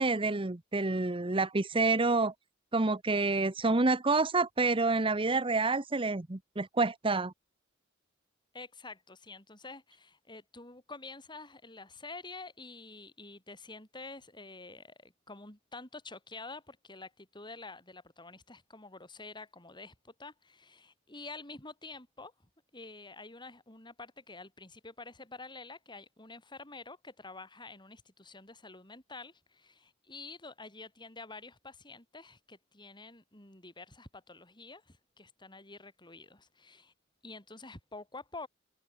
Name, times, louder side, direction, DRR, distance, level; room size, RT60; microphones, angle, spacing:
voice 1, 0.0-2.3 2.7-7.3, right 3 dB, 25° right, 0.9 m, -28 dB
voice 2, 8.5-22.3 22.7-36.9 37.2-38.5, left 3 dB, 20° left, 6.2 m, -48 dB
open air
head